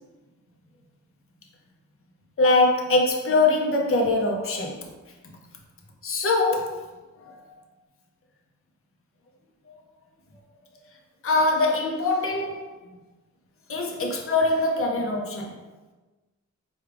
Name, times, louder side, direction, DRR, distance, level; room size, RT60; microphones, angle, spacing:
voice 1, 2.4-4.8 5.2-5.3 6.0-6.9 7.2-7.6 11.2-12.7 13.7-15.5, left 2 dB, 45° left, 0 dB, 0.6 m, -23 dB
4.5 x 2.3 x 3.3 m, 1.2 s
wide cardioid pair, 80°, 30 cm